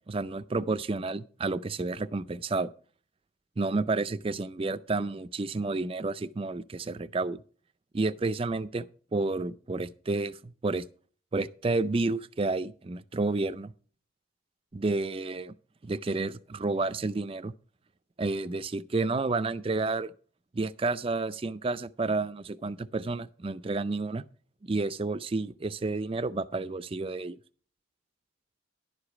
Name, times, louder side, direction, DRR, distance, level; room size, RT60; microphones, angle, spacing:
voice 1, 0.1-2.7 3.6-7.4 7.9-8.9 9.1-10.9 11.3-13.7 14.7-15.5 15.8-17.5 18.2-20.1 20.5-24.2 24.6-27.4, right 3 dB, 25° right, 0.4 m, -30 dB
11.0 x 4.9 x 7.0 m
head